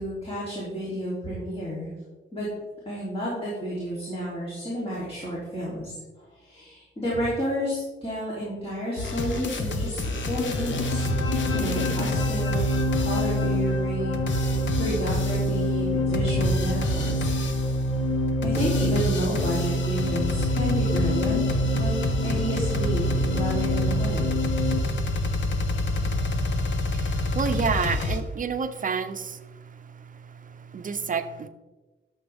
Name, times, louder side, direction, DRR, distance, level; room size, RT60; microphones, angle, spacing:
voice 1, 0.0-1.9 2.3-2.5 2.8-5.9 6.3-11.0 11.5-17.3 18.4-24.3, equal, 25° left, -7 dB, 3.0 m, -31 dB
sound 1, 9.0-13.5 14.1-15.6 16.1-17.8 18.3-28.2, left 2 dB, 65° left, 1.1 m, -29 dB
sound 2, 10.4-24.8, equal, 80° left, 1.2 m, -26 dB
voice 2, 26.0-31.5, right 5 dB, 40° right, 9 dB, 0.7 m, -31 dB
12.0 x 7.1 x 3.5 m, 1.2 s
wide cardioid pair, 135°, 21 cm